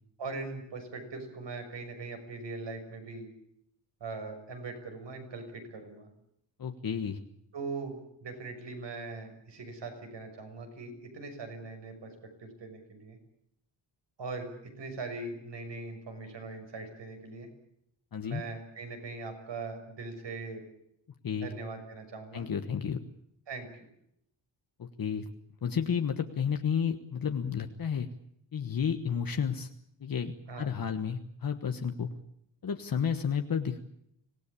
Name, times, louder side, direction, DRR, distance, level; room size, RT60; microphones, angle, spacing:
voice 1, 0.2-3.3 4.0-6.1 7.5-12.1 12.4-13.2 14.2-14.5 14.8-17.5 18.2-20.6 21.4-22.5 23.5-23.7 30.5-30.7, right 3 dB, 65° right, 5 dB, 6.4 m, -41 dB
voice 2, 6.6-7.2 18.1-18.4 21.2-21.5 22.3-23.0 24.8-25.2 25.6-28.1 28.5-29.7 30.0-32.1 32.6-33.8, left 7 dB, 50° left, 6 dB, 1.4 m, -31 dB
26.0 x 18.5 x 8.5 m, 0.75 s
wide cardioid pair, 155°, 46 cm